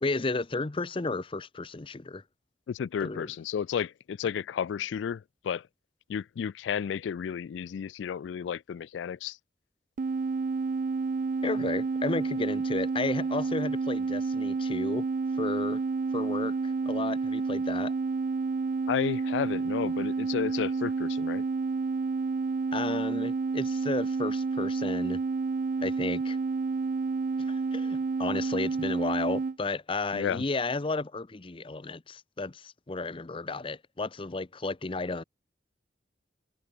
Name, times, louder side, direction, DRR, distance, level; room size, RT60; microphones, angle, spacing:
voice 1, 0.0-2.2 3.0-3.3 11.4-15.1 15.4-15.8 16.1-17.9 22.7-25.2 25.8-26.4 27.5-35.2, left 3 dB, 30° left, 0.7 m, -33 dB
voice 2, 2.7-5.7 6.1-9.4 18.9-21.4 30.1-30.4, left 8 dB, 90° left, 0.3 m, -32 dB
sound 1, 10.0-29.6, right 4 dB, 45° right, 0.4 m, -30 dB
head